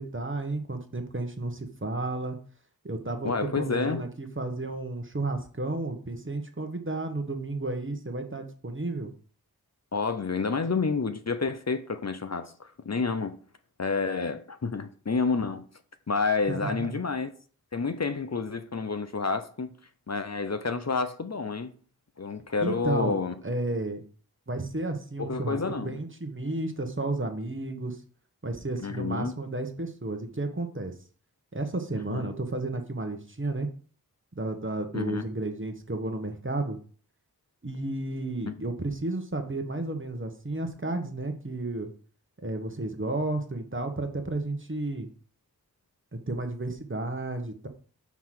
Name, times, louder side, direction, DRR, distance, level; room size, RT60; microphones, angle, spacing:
voice 1, 0.0-2.4 2.8-9.1 16.5-16.9 22.6-23.2 23.4-24.0 24.5-28.0 28.4-30.9 31.5-33.7 34.4-36.8 37.6-41.9 42.4-45.1 46.3-47.7, right 2 dB, 35° right, 1.2 m, -32 dB
voice 2, 3.2-4.0 9.9-13.4 13.8-15.6 16.1-17.3 17.7-19.7 20.1-21.7 22.2-23.3 25.2-26.0 28.8-29.3 32.1-32.3 34.9-35.3 38.5-38.6, left 4 dB, 45° left, 0.7 m, -29 dB
5.7 x 4.8 x 5.9 m
wide cardioid pair, 55°, 37 cm